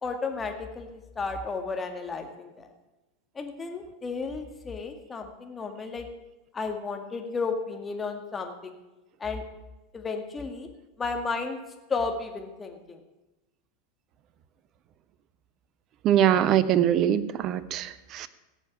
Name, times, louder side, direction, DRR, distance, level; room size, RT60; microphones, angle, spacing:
voice 1, 0.0-2.7 3.4-6.1 6.5-8.8 9.2-9.4 9.9-10.7 11.0-11.6 11.9-13.0, left 4 dB, 20° left, 4 dB, 1.9 m, -33 dB
voice 2, 16.0-18.3, right 10 dB, 40° right, 15 dB, 0.8 m, -23 dB
17.0 x 6.9 x 7.1 m, 1.1 s
figure-of-eight pair, 85°, 0 cm